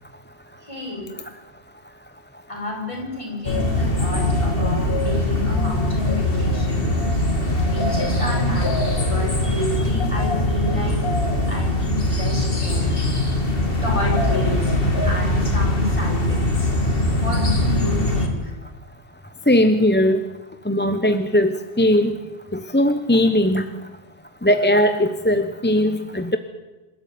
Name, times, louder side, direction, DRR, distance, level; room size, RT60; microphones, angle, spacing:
voice 1, 0.6-1.1 2.5-7.0 7.6-11.0 11.5-12.9 13.8-14.7 15.0-16.7 17.2-18.5, left 2 dB, 30° left, -2 dB, 7.6 m, -30 dB
sound 1, 3.5-18.3, left 1 dB, 55° left, 3.0 m, -21 dB
voice 2, 19.5-20.2 20.7-22.1 22.5-23.6 24.4-26.4, left 1 dB, 10° left, 9 dB, 0.9 m, -19 dB
27.5 x 13.5 x 9.5 m, 1.2 s
omnidirectional pair, 1.1 m